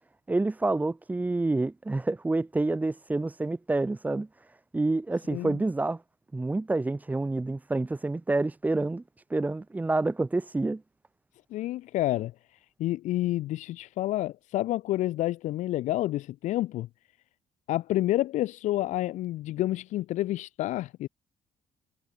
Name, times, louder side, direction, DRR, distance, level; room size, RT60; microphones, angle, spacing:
voice 1, 0.3-4.3 4.7-6.0 6.3-9.0 9.3-10.8, right 2 dB, 15° right, 2.8 m, -28 dB
voice 2, 11.5-12.3 12.8-16.9 17.7-21.1, left 15 dB, 85° left, 3.7 m, -29 dB
cardioid pair, 135°, 12 cm